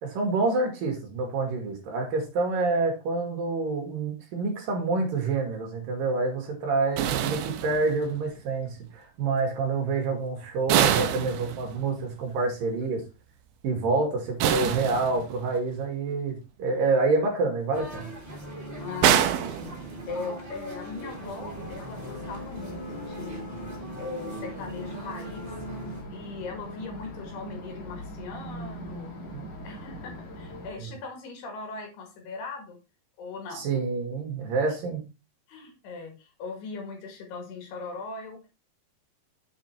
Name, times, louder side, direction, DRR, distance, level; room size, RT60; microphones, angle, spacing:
voice 1, 0.0-13.0 13.6-18.1 29.3-29.4 30.8-30.9 33.5-35.0, right 3 dB, 60° right, 2 dB, 3.2 m, -27 dB
sound 1, 7.0-8.2 10.7-12.0 14.4-15.6 19.0-20.3, right 10 dB, 75° right, 2.5 m, -26 dB
sound 2, 17.7-26.0, equal, 20° right, 2.2 m, -40 dB
voice 2, 18.8-23.5 24.0-25.5 26.1-29.1 29.6-32.8 33.2-33.7 35.5-38.5, left 4 dB, 75° left, 3 dB, 3.9 m, -39 dB
sound 3, 21.1-30.7, equal, 55° left, 3.4 m, -41 dB
7.7 x 4.9 x 4.4 m, 0.28 s
omnidirectional pair, 4.8 m